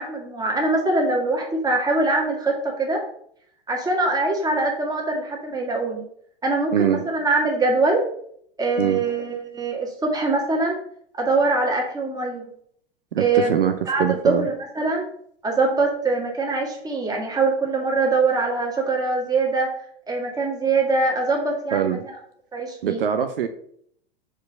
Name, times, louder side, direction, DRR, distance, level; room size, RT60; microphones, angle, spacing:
voice 1, 0.0-3.0 3.7-6.0 6.4-8.1 8.6-10.8 11.2-12.5 13.2-13.5 13.9-15.0 15.4-19.7 20.1-22.0 22.5-23.0, right 3 dB, 15° right, -1 dB, 1.9 m, -23 dB
voice 2, 6.7-7.0 8.8-9.0 13.1-14.5 21.7-22.0 22.8-23.5, right 9 dB, 65° right, 8 dB, 0.6 m, -23 dB
4.8 x 4.6 x 5.1 m, 0.66 s
figure-of-eight pair, 90°, 30 cm